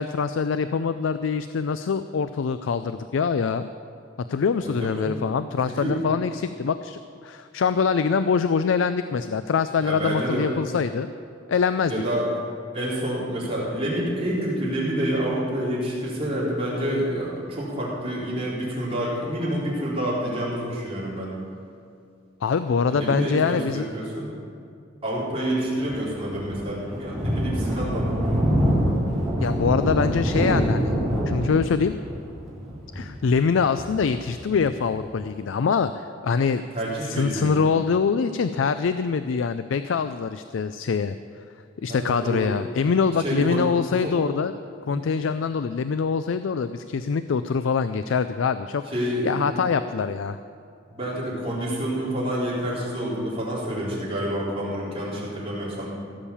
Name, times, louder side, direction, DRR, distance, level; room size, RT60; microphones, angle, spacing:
voice 1, 0.0-3.7 4.3-11.1 11.5-11.9 22.4-23.8 29.4-31.0 31.3-32.0 32.9-36.6 37.0-41.1 41.8-44.5 44.9-48.8 49.2-50.4, left 5 dB, 90° left, 11 dB, 0.4 m, -24 dB
voice 2, 4.8-5.1 5.7-6.0 9.8-10.5 11.9-12.3 12.7-21.3 22.9-24.3 25.0-28.1 36.7-37.6 41.9-42.5 43.2-43.6 44.0-44.1 44.9-45.0 48.9-49.4 50.9-55.9, right 1 dB, 30° right, -8 dB, 4.2 m, -28 dB
Thunder, 25.8-35.0, equal, ahead, 3.9 m, -25 dB
16.0 x 7.3 x 7.0 m, 2.4 s
head